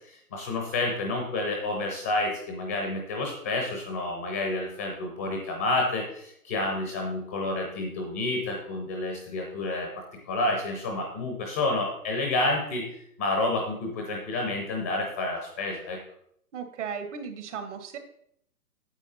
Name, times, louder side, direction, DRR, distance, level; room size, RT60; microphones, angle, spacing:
voice 1, 0.1-12.8 13.2-16.0, left 2 dB, 10° left, 1 dB, 0.5 m, -29 dB
voice 2, 16.5-18.0, right 6 dB, 50° right, 7 dB, 1.6 m, -36 dB
9.0 x 8.1 x 4.2 m, 0.70 s
hypercardioid pair, 155°, 46 cm